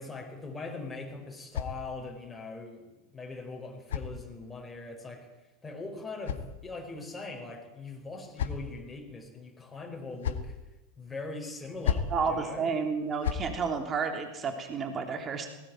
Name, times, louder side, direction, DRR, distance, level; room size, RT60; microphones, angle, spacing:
voice 1, 0.0-2.8 3.1-10.6 11.0-12.7, left 3 dB, 15° left, 1 dB, 5.2 m, -41 dB
sound 1, 0.6-2.3 3.3-4.7 5.7-7.1 7.9-8.9 9.9-10.6 11.6-12.2 13.0-13.5, left 7 dB, 70° left, 1.8 m, -36 dB
voice 2, 12.1-15.5, right 5 dB, 30° right, 5 dB, 3.3 m, -31 dB
19.5 x 18.5 x 9.3 m, 1.0 s
figure-of-eight pair, 90°, 0 cm